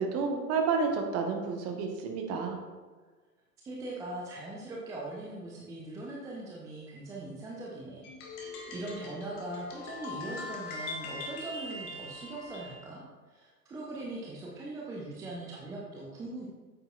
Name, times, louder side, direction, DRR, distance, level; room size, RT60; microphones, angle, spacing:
voice 1, 0.0-2.6, right 5 dB, 30° right, 3 dB, 1.2 m, -30 dB
voice 2, 3.6-13.0 13.3-16.5, right 2 dB, 5° right, -4 dB, 0.5 m, -41 dB
sound 1, 8.0-12.8, left 2 dB, 40° left, 1.6 m, -41 dB
8.7 x 7.8 x 2.4 m, 1.4 s
figure-of-eight pair, 95°, 48 cm